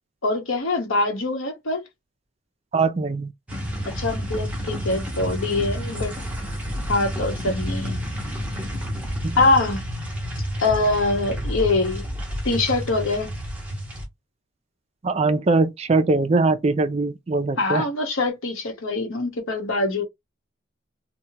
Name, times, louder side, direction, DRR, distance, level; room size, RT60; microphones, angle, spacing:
voice 1, 0.2-1.8 3.9-6.1 6.9-8.0 9.4-9.8 10.6-12.1 12.4-13.3 17.6-20.0, left 2 dB, 75° left, 1.0 m, -23 dB
voice 2, 2.7-3.3 9.2-9.4 15.0-17.9, right 3 dB, 30° right, 0.3 m, -21 dB
sound 1, 3.5-14.1, equal, 5° right, 0.8 m, -30 dB
3.0 x 2.2 x 2.7 m
head